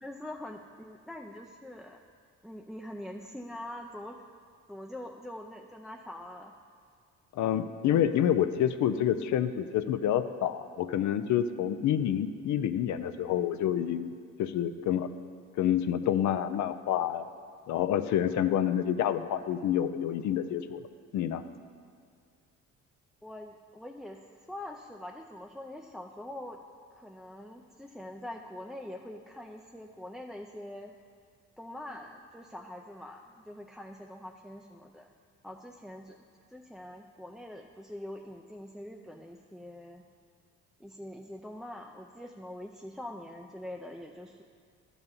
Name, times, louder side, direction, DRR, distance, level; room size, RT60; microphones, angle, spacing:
voice 1, 0.0-2.0 2.4-4.2 4.7-6.5 23.2-26.6 26.9-30.9 31.6-35.1 35.4-36.2 36.5-40.0 40.8-44.4, left 1 dB, ahead, 1 dB, 0.5 m, -44 dB
voice 2, 7.3-14.1 14.4-15.1 15.6-17.3 17.7-20.8 21.1-21.4, left 10 dB, 70° left, 10 dB, 0.5 m, -28 dB
10.5 x 4.1 x 7.2 m, 2.1 s
cardioid pair, 90°, 30 cm